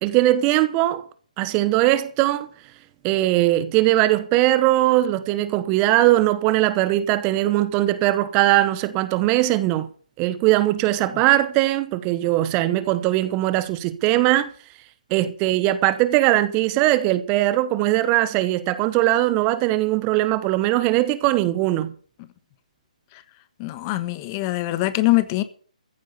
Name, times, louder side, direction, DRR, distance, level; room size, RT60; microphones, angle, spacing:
voice 1, 0.0-1.1 1.4-2.5 3.0-9.9 10.2-14.5 15.1-21.9, right 15 dB, 25° right, 1.0 m, -20 dB
voice 2, 23.6-25.4, left 18 dB, 30° left, 1.3 m, -23 dB
15.0 x 8.8 x 6.8 m
figure-of-eight pair, 140°, 4 cm